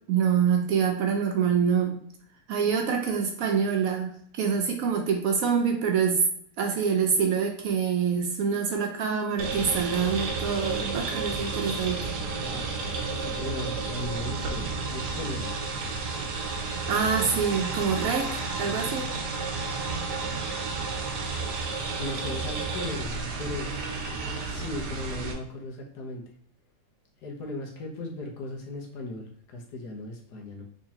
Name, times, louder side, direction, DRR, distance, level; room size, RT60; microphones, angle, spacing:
voice 1, 0.1-2.0 2.5-6.2 6.6-12.0 16.9-19.1, right 6 dB, 65° right, 3 dB, 1.0 m, -26 dB
sound 1, 9.4-25.3, right 4 dB, 90° right, 1.4 m, -32 dB
voice 2, 12.9-15.5 22.0-23.7 24.1-26.2 27.2-30.6, left 2 dB, 80° left, 1 dB, 1.5 m, -37 dB
3.7 x 3.2 x 2.8 m, 0.64 s
omnidirectional pair, 1.7 m